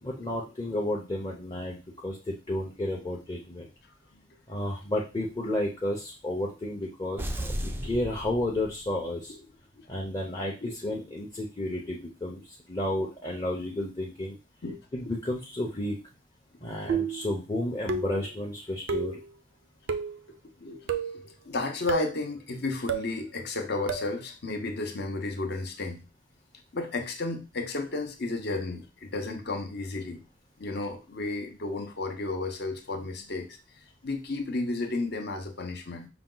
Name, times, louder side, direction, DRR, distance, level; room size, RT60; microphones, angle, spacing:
voice 1, 0.0-3.7 4.5-9.3 9.9-14.4 14.9-16.0 16.6-19.2, left 1 dB, 25° left, -2 dB, 0.7 m, -32 dB
sound 1, 7.2-9.1, equal, 10° right, 0.3 m, -35 dB
voice 2, 7.6-8.0 9.3-9.4 9.8-9.9 10.6-10.7 14.6-15.2 16.6-16.7 20.3-26.1 26.7-30.2 30.6-36.1, left 2 dB, 55° left, 5 dB, 0.8 m, -33 dB
sound 2, 16.9-17.3 17.9-18.3 18.9-19.2 19.9-20.2 20.9-21.2 21.9-22.2 22.9-23.1 23.9-24.2, right 4 dB, 90° right, 0.5 m, -30 dB
5.8 x 2.3 x 3.8 m, 0.30 s
head